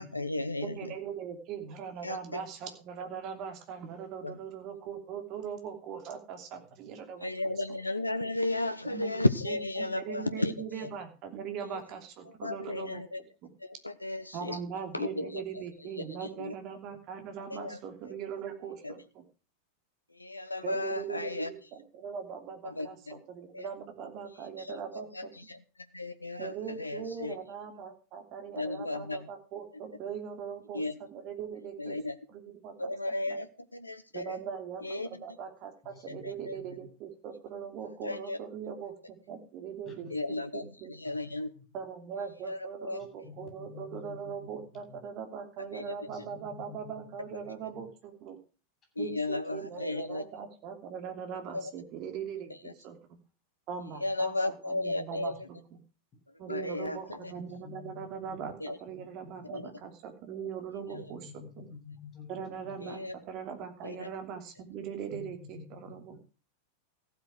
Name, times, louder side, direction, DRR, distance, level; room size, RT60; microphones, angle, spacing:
voice 1, 0.0-0.9 2.0-2.2 4.2-4.4 7.2-10.5 10.8-10.9 12.3-13.2 13.6-14.6 14.9-15.6 16.2-16.5 17.5-17.8 18.8-18.9 20.1-21.5 22.6-23.2 23.5-23.7 24.6-25.6 25.9-27.4 28.6-29.3 30.7-30.9 31.8-32.1 32.8-34.4 34.8-35.2 36.2-36.6 38.0-38.4 40.1-41.5 42.5-43.0 45.7-45.9 49.0-50.2 51.5-51.7 52.6-52.7 54.0-55.4 56.5-57.3 58.6-58.8 59.4-59.7 60.9-61.1 62.8-63.1 63.8-64.1, left 2 dB, 85° left, 12 dB, 0.9 m, -34 dB
voice 2, 0.6-7.3 8.8-13.0 13.4-13.5 14.3-19.2 20.6-25.3 26.4-32.0 32.3-33.4 34.1-40.9 41.7-48.4 49.0-53.0 53.7-55.6 56.4-61.7 62.3-63.0 63.3-66.2, right 7 dB, 40° right, 6 dB, 2.8 m, -41 dB
voice 3, 35.8-36.9 39.8-40.1 41.1-41.2 41.5-41.6 43.2-44.5 44.9-45.0 46.1-47.0 47.7-47.8 57.5-58.5 58.9-59.6 60.9-62.9 65.1-66.1, left 6 dB, 25° left, 4 dB, 7.1 m, -49 dB
15.0 x 8.2 x 6.1 m, 0.34 s
figure-of-eight pair, 90°, 0 cm